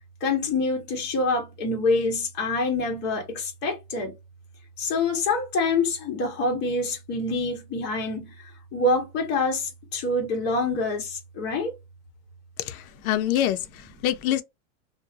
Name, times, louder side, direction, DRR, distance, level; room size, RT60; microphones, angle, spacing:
voice 1, 0.2-4.1 4.8-8.3 8.7-11.7, left 2 dB, 25° left, 1.1 m, -26 dB
voice 2, 12.6-14.4, left 12 dB, 90° left, 0.6 m, -26 dB
2.7 x 2.2 x 2.7 m
supercardioid pair, 170°, 42 cm